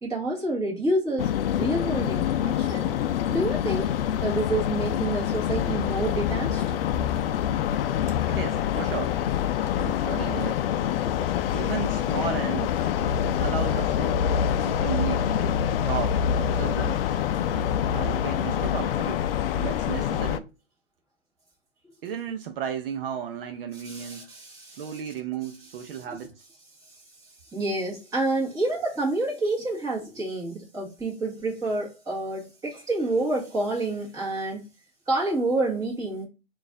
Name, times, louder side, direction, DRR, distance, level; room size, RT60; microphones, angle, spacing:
voice 1, 0.0-3.0 3.3-3.9 4.2-6.6 11.0-11.1 23.7-25.0 27.5-34.7 35.1-36.2, right 2 dB, 10° right, 1.5 m, -28 dB
sound 1, 1.2-20.4, left 9 dB, 65° left, 0.5 m, -26 dB
voice 2, 8.3-9.2 9.7-10.6 11.5-12.8 13.4-14.2 14.7-15.4 15.9-17.1 17.9-19.3 19.5-20.5 22.0-24.3 24.7-26.4, right 8 dB, 60° right, 0.7 m, -34 dB
3.9 x 2.6 x 3.7 m
hypercardioid pair, 145°, 32 cm